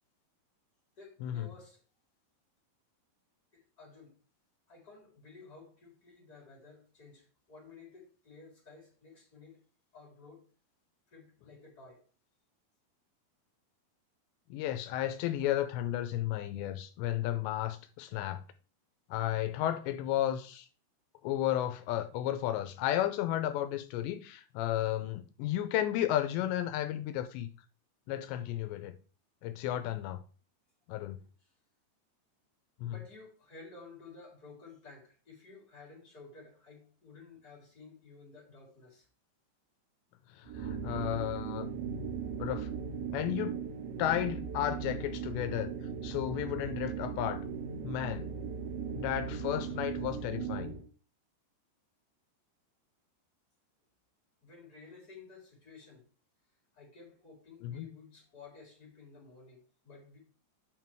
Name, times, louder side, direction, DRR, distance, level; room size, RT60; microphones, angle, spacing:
voice 1, 1.0-1.8 3.5-4.2 4.7-9.6 9.9-10.4 11.1-12.0 31.2-31.6 32.8-39.1 54.4-56.1 56.7-60.3, left 4 dB, 20° left, 4.2 m, -54 dB
voice 2, 14.5-18.4 19.1-20.7 21.2-27.5 28.1-28.9 29.4-30.2 30.9-31.2 32.8-32.9 40.3-41.7 42.4-42.7 43.1-43.6 44.0-45.7 46.0-47.4 47.8-48.3 48.9-50.8 57.6-57.9, left 12 dB, 80° left, 2.8 m, -33 dB
sound 1, 40.5-50.9, right 6 dB, 80° right, 3.4 m, -38 dB
8.7 x 5.8 x 4.6 m
omnidirectional pair, 5.3 m